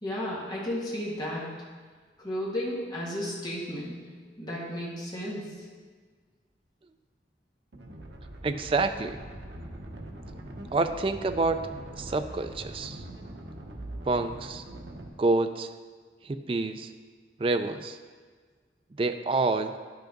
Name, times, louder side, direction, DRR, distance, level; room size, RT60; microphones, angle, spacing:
voice 1, 0.0-1.6 2.2-4.0 4.4-5.7, left 1 dB, 25° left, -5 dB, 1.7 m, -33 dB
sound 1, 7.7-15.1, right 1 dB, 85° right, 0.9 m, -42 dB
voice 2, 8.4-9.2 10.7-11.7 11.9-13.0 14.0-14.6 15.2-15.7 16.2-16.9 17.4-18.0 19.0-19.8, right 3 dB, 30° right, 9 dB, 0.3 m, -27 dB
10.0 x 5.9 x 3.8 m, 1.5 s
head